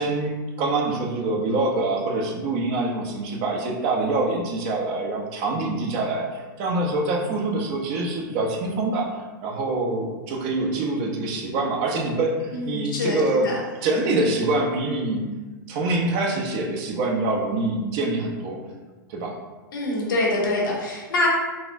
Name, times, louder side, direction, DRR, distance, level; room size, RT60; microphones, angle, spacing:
voice 1, 0.0-13.5 13.8-15.2 15.7-18.6 19.1-19.4, right 2 dB, 45° right, 0 dB, 0.7 m, -25 dB
voice 2, 12.5-13.6 19.7-21.3, left 2 dB, 75° left, -3 dB, 1.0 m, -25 dB
4.0 x 2.5 x 2.5 m, 1.3 s
hypercardioid pair, 105°, 11 cm